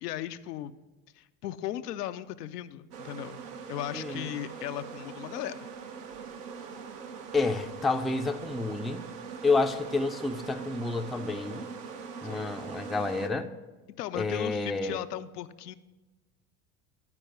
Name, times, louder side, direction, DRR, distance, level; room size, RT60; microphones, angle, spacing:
voice 1, 0.0-0.7 1.2-3.4 3.7-5.7 12.3-12.5 14.0-15.7, left 12 dB, 90° left, 10 dB, 0.6 m, -37 dB
sound 1, 2.9-13.3, right 6 dB, 80° right, 1.0 m, -42 dB
voice 2, 3.9-4.3 7.3-9.0 9.4-11.7 12.2-13.5 14.1-15.0, left 3 dB, ahead, 5 dB, 0.3 m, -29 dB
11.0 x 4.5 x 5.9 m, 1.2 s
hypercardioid pair, 80°, 46 cm